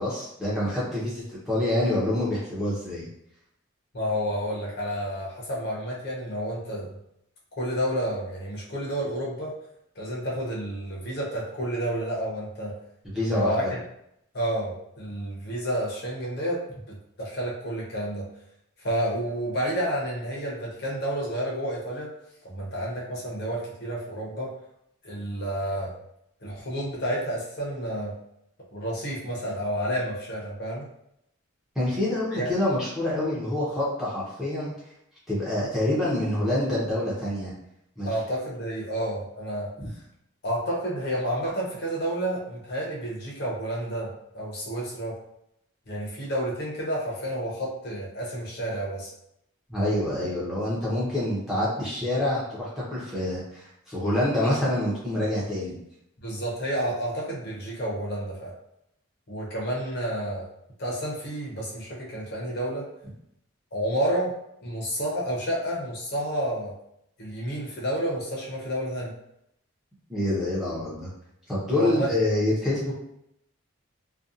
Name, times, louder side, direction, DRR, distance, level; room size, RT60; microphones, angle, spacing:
voice 1, 0.0-3.1 13.1-13.7 31.8-34.7 35.3-37.5 38.0-38.1 39.8-39.9 49.7-55.8 70.1-71.1 71.5-72.9, left 1 dB, ahead, -8 dB, 0.6 m, -26 dB
voice 2, 3.9-6.9 7.6-9.5 10.0-12.8 13.3-13.8 14.3-16.6 16.9-18.3 18.8-22.1 22.4-24.5 25.0-25.9 26.4-28.2 28.7-30.9 32.3-32.5 38.1-39.7 40.4-45.2 45.9-49.1 56.2-58.5 59.3-60.5 60.8-62.9 63.7-64.3 64.6-66.7 67.2-69.1 71.7-72.1, equal, 50° left, -4 dB, 0.7 m, -30 dB
2.6 x 2.2 x 2.4 m, 0.78 s
head